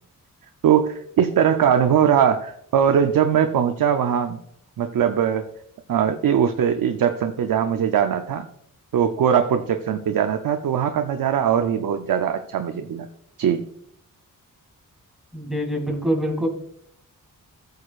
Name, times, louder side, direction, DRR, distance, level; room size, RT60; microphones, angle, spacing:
voice 1, 0.6-4.4 4.8-5.4 5.9-8.5 8.9-13.1 13.4-13.7, right 8 dB, 75° right, 6 dB, 0.6 m, -21 dB
voice 2, 15.3-16.5, equal, ahead, 0 dB, 2.5 m, -25 dB
14.5 x 6.6 x 2.4 m, 0.70 s
wide cardioid pair, 105°, 34 cm